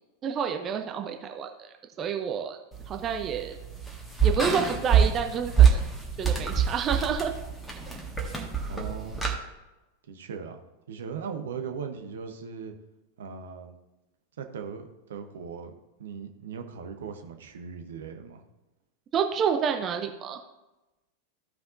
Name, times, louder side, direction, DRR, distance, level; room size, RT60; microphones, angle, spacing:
voice 1, 0.2-1.7 2.0-2.6 2.9-3.5 4.2-5.8 6.2-7.3 19.1-20.4, right 7 dB, 30° right, 5 dB, 0.7 m, -29 dB
sound 1, 2.7-9.3, right 7 dB, 5° left, 1.7 m, -25 dB
voice 2, 8.7-9.3 10.1-10.6 10.9-12.7 13.2-13.7 14.4-15.7 16.0-18.4, right 6 dB, 60° right, 5 dB, 0.9 m, -38 dB
14.5 x 5.7 x 2.6 m, 1.0 s
figure-of-eight pair, 90°, 0 cm